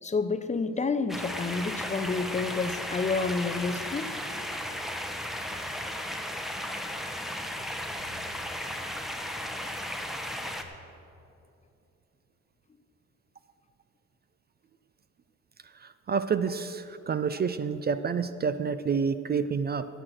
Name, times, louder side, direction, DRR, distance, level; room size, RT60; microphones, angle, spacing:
voice 1, 0.0-4.1, left 4 dB, 25° left, 11 dB, 0.6 m, -29 dB
sound 1, 1.1-10.6, equal, ahead, 1.0 m, -35 dB
voice 2, 15.8-19.9, right 6 dB, 35° right, 12 dB, 0.4 m, -29 dB
11.0 x 8.0 x 7.7 m, 2.7 s
cardioid pair, 90°, 30 cm